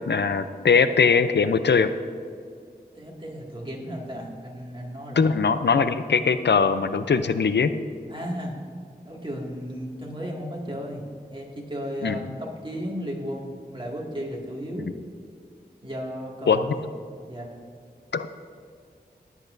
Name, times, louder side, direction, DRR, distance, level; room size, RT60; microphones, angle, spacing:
voice 1, 0.1-1.9 5.2-7.7 12.0-12.1 16.5-16.8 18.1-18.3, left 5 dB, 85° left, 11 dB, 0.5 m, -21 dB
voice 2, 2.9-5.3 8.1-8.5 9.0-14.9 15.8-16.8 17.3-17.5, equal, 30° right, -2 dB, 2.1 m, -34 dB
18.5 x 8.3 x 2.6 m, 2.2 s
wide cardioid pair, 65°, 18 cm